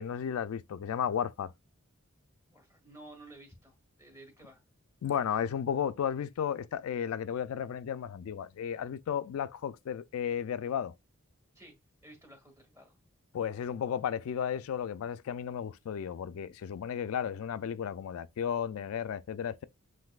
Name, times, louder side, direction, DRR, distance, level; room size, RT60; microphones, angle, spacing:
voice 1, 0.0-1.5 5.0-10.9 13.3-19.6, left 8 dB, 85° left, 0.3 m, -34 dB
voice 2, 2.5-4.6 11.5-11.7 12.0-13.0, right 2 dB, 15° right, 1.6 m, -53 dB
7.8 x 2.6 x 2.3 m
head